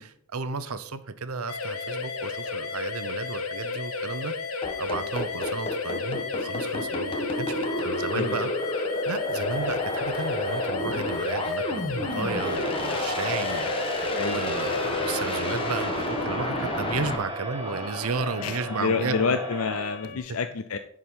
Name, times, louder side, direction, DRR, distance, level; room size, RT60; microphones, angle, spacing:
voice 1, 0.0-4.3 4.8-8.5 9.1-19.4 20.0-20.2, right 4 dB, 75° right, 12 dB, 0.8 m, -33 dB
sound 1, 1.5-20.2, left 4 dB, 90° left, 1.1 m, -34 dB
sound 2, 4.6-17.2, left 1 dB, 25° left, 1.2 m, -30 dB
voice 2, 8.1-8.5 14.1-14.4 18.4-20.8, left 5 dB, 65° left, 10 dB, 0.5 m, -28 dB
Crowd, 12.0-20.1, right 1 dB, 20° right, 0.9 m, -36 dB
10.5 x 4.9 x 5.5 m, 0.65 s
head